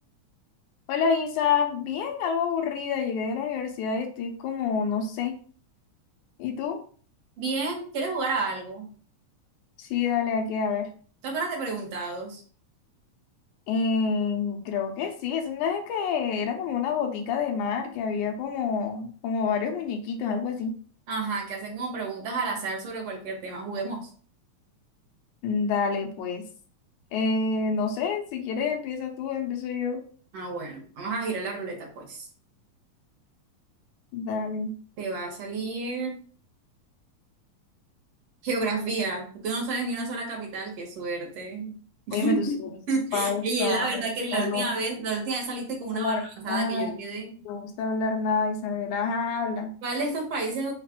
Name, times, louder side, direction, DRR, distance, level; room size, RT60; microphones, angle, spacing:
voice 1, 0.9-5.3 6.4-6.8 9.8-10.9 13.7-20.7 25.4-26.4 27.1-30.0 34.1-34.7 42.1-42.7 43.1-44.7 45.9-46.2 46.5-46.9 47.5-49.7, left 5 dB, 90° left, 4 dB, 2.3 m, -28 dB
voice 2, 7.4-8.9 11.2-12.4 21.1-24.1 30.3-32.3 35.0-36.2 38.4-41.7 42.1-42.6 42.9-46.2 46.4-47.3 49.8-50.7, right 3 dB, 65° right, 0 dB, 2.0 m, -30 dB
5.1 x 2.4 x 3.6 m, 0.43 s
omnidirectional pair, 3.4 m